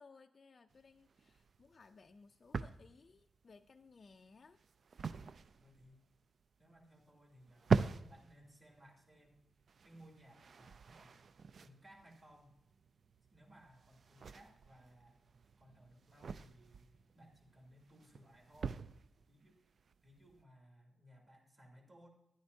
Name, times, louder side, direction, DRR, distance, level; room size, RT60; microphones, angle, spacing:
voice 1, 0.0-4.6, left 4 dB, 40° left, 5 dB, 0.4 m, -61 dB
sound 1, 0.7-20.4, right 5 dB, 55° right, 0.4 m, -43 dB
voice 2, 5.6-6.1 6.6-9.4 9.8-11.2 11.6-12.6 13.3-15.2 15.6-16.9 17.1-18.8 19.3-19.6 20.0-22.1, equal, 30° right, 0 dB, 2.5 m, -62 dB
13.0 x 11.0 x 2.7 m, 0.79 s
wide cardioid pair, 160°, 0 cm